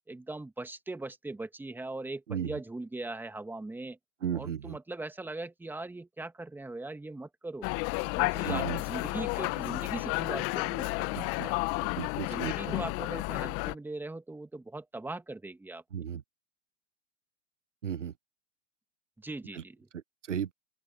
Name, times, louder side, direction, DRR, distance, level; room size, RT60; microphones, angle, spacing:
voice 1, 0.1-4.0 4.3-7.7 8.2-11.8 12.2-15.8 19.2-19.9, right 2 dB, 5° right, 2.5 m, -40 dB
voice 2, 4.2-4.8 8.4-8.8 11.1-11.5 12.0-12.5 15.9-16.2 17.8-18.1 19.5-19.6 19.9-20.0 20.3-20.5, right 8 dB, 85° right, 1.2 m, -34 dB
sound 1, 7.6-13.7, left 27 dB, 40° left, 1.1 m, -32 dB
open air
hypercardioid pair, 110°, 36 cm